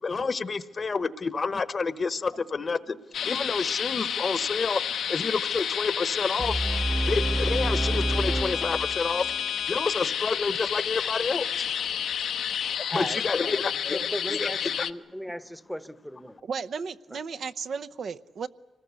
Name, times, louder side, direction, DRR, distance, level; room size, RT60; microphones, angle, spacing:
voice 1, 0.0-3.0 3.2-6.6 7.1-9.4 9.7-11.7 12.0-12.1 12.9-14.0 14.3-14.5 14.8-14.9, left 4 dB, 35° left, 16 dB, 1.0 m, -29 dB
sound 1, 3.1-14.9, left 8 dB, 80° left, 0.9 m, -30 dB
sound 2, 6.4-9.4, right 1 dB, 20° right, 0.8 m, -28 dB
voice 2, 12.9-16.4 17.1-17.2, equal, ahead, 16 dB, 1.0 m, -37 dB
voice 3, 16.5-18.5, right 5 dB, 60° right, 10 dB, 0.8 m, -34 dB
25.5 x 19.5 x 8.3 m, 1.1 s
cardioid pair, 115°, 0 cm